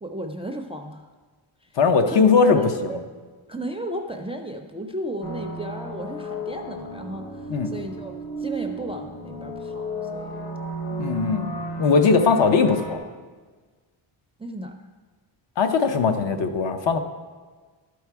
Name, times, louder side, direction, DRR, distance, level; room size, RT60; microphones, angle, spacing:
voice 1, 0.0-1.1 2.1-2.2 2.5-3.0 3.5-8.1 8.4-9.8 10.1-10.6 14.4-14.7, right 1 dB, 15° right, 4 dB, 0.3 m, -34 dB
voice 2, 1.8-2.6 7.5-7.7 11.0-11.5 11.8-13.0 15.6-17.0, left 5 dB, 60° left, 7 dB, 0.8 m, -19 dB
sound 1, 5.2-13.0, right 1 dB, 45° left, 1.3 m, -33 dB
12.0 x 4.7 x 4.6 m, 1.4 s
wide cardioid pair, 130°, 49 cm